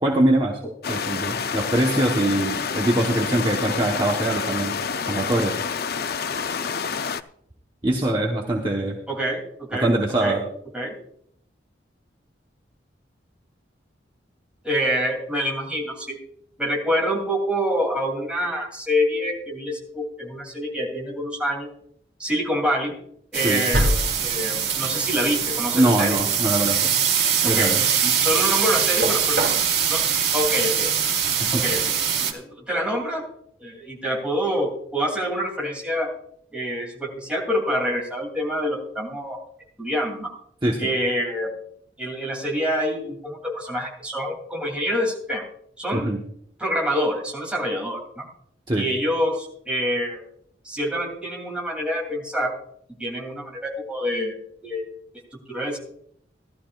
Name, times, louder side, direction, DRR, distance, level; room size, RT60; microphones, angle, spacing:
voice 1, 0.0-0.6 0.9-4.8 5.1-5.6 7.8-9.0 9.8-10.4 23.4-23.6 25.7-27.0 27.4-27.9 31.4-31.6 40.6-40.9 45.9-46.2 48.7-48.9, right 1 dB, 25° right, -1 dB, 1.1 m, -23 dB
sound 1, 0.8-7.2, left 6 dB, 55° left, 0.5 m, -28 dB
voice 2, 9.1-9.9 10.2-10.4 10.7-10.9 14.6-16.2 16.6-21.7 22.2-22.9 23.3-23.9 24.2-26.2 27.4-27.7 28.0-29.5 29.9-30.0 30.3-30.9 31.5-33.2 33.6-36.1 36.5-39.4 39.8-40.3 40.8-41.5 42.0-45.4 45.8-46.1 46.6-48.3 48.7-50.2 50.6-52.5 53.0-54.4 54.6-54.8 55.3-55.8, equal, 5° right, -2 dB, 2.8 m, -26 dB
sound 2, 23.3-32.3, right 7 dB, 60° right, 1.5 m, -22 dB
17.5 x 12.5 x 2.4 m, 0.68 s
head